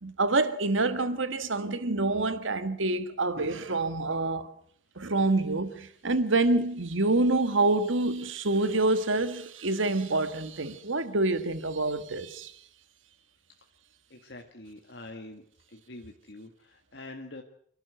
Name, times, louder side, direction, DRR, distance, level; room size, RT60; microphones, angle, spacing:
voice 1, 0.0-4.5 4.9-12.5, right 2 dB, 90° right, 1.6 m, -27 dB
voice 2, 14.1-15.4 15.7-17.4, left 2 dB, 65° left, 1.7 m, -45 dB
28.0 x 12.0 x 8.0 m
head